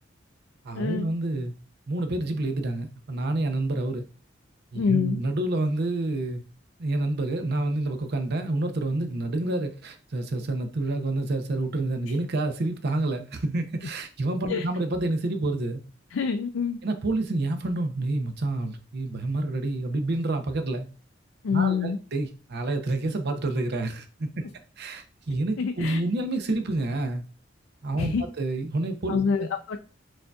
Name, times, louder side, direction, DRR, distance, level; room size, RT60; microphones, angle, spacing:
voice 1, 0.6-1.5 1.9-4.0 4.7-6.4 6.8-15.8 16.8-20.9 21.5-24.4 24.8-27.2 27.8-29.5, right 2 dB, 55° right, 0.6 m, -28 dB
voice 2, 4.7-5.2 14.5-14.7 16.1-16.8 21.4-22.0 25.6-26.0 28.0-28.2 29.1-29.8, left 6 dB, 80° left, 0.4 m, -26 dB
6.1 x 2.6 x 2.3 m
head